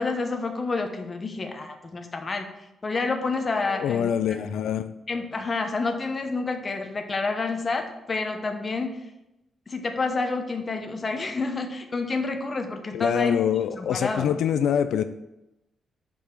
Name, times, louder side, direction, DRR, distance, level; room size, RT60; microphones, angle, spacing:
voice 1, 0.0-2.5 2.8-4.1 5.1-9.0 9.7-13.4 13.7-14.4, left 3 dB, 25° left, 5 dB, 0.8 m, -28 dB
voice 2, 3.7-4.9 12.9-15.0, left 9 dB, 85° left, 10 dB, 0.3 m, -25 dB
5.2 x 5.0 x 5.9 m, 0.91 s
wide cardioid pair, 155°, 0 cm